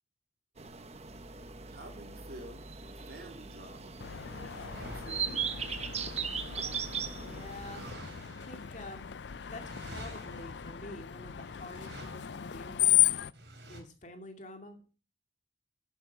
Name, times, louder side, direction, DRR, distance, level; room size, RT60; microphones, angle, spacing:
sound 1, 0.6-7.9, right 6 dB, 35° right, 1.0 m, -39 dB
voice 1, 1.7-4.0 4.7-5.5, right 1 dB, 60° right, 2 dB, 3.3 m, -49 dB
sound 2, 3.8-6.7 7.3-13.8, right 1 dB, 80° right, 3.6 m, -50 dB
Screech, 4.0-13.3, left 14 dB, 75° left, 0.5 m, -34 dB
voice 2, 7.1-7.9 8.4-9.1 9.5-13.0 13.7-14.9, left 1 dB, 45° left, 5 dB, 2.4 m, -48 dB
11.0 x 8.9 x 6.2 m, 0.36 s
head